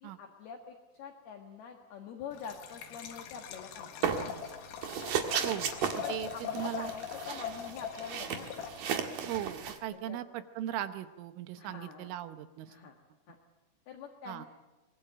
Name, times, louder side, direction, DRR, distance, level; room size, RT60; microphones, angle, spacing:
voice 1, 0.0-4.6 6.0-8.5 9.9-10.2 11.6-12.2 12.7-13.0 13.3-13.4 13.9-14.5, left 6 dB, 60° left, 3 dB, 3.1 m, -46 dB
Liquid, 2.3-9.2, left 8 dB, 80° left, 4.4 m, -42 dB
sound 1, 4.0-4.5 4.8-9.8, right 7 dB, 55° right, 2.6 m, -34 dB
voice 2, 5.4-6.9 9.3-12.8 14.3-14.5, right 12 dB, 75° right, 10 dB, 3.4 m, -38 dB
24.0 x 21.0 x 8.9 m, 1.1 s
omnidirectional pair, 5.9 m